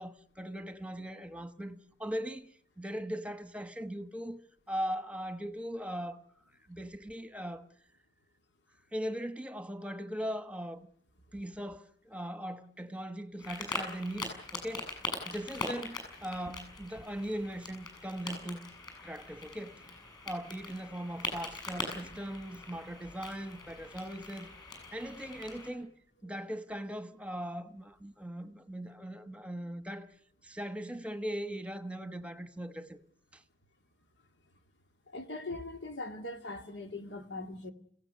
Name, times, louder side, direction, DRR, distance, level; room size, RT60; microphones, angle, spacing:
voice 1, 0.0-4.4 4.7-6.2 6.7-7.6 8.9-10.9 11.3-14.9 15.3-18.7 19.0-19.9 20.2-24.5 24.9-25.9 26.2-30.1 30.4-33.0 33.3-33.4, equal, 5° right, 1.2 m, -39 dB
sound 1, 13.4-25.7, left 2 dB, 25° left, 7.7 m, -42 dB
voice 2, 35.1-37.7, left 2 dB, 90° left, 2.2 m, -41 dB
29.0 x 16.5 x 6.8 m
head